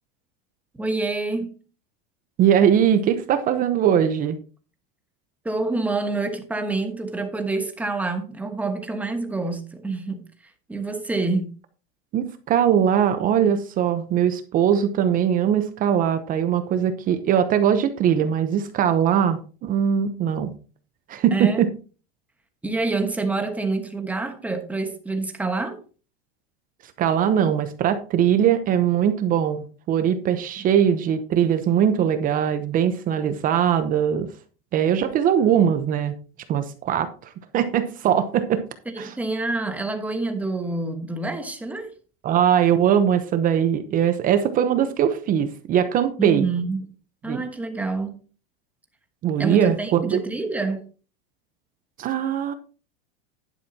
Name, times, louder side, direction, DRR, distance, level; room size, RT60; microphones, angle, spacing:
voice 1, 0.8-1.6 5.4-10.2 10.7-11.5 21.3-21.6 22.6-25.8 38.9-41.9 46.2-46.9 47.2-48.1 49.4-50.8, right 3 dB, 5° right, 1.3 m, -27 dB
voice 2, 2.4-4.4 12.1-20.5 21.1-21.7 27.0-34.3 34.7-36.1 36.5-38.6 39.0-39.1 42.2-46.5 47.3-47.4 49.2-50.2 52.0-52.5, right 9 dB, 30° right, 0.8 m, -21 dB
11.0 x 10.0 x 2.8 m
supercardioid pair, 155°, 29 cm